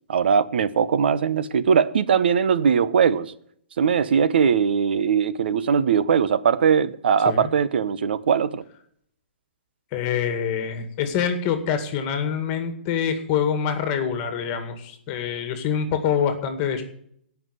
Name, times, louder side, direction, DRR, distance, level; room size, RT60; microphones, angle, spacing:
voice 1, 0.1-3.3 3.8-8.6, right 7 dB, 65° right, 1.0 m, -20 dB
voice 2, 9.9-16.8, left 7 dB, 25° left, 2.0 m, -25 dB
17.0 x 5.9 x 8.1 m
hypercardioid pair, 160°, 6 cm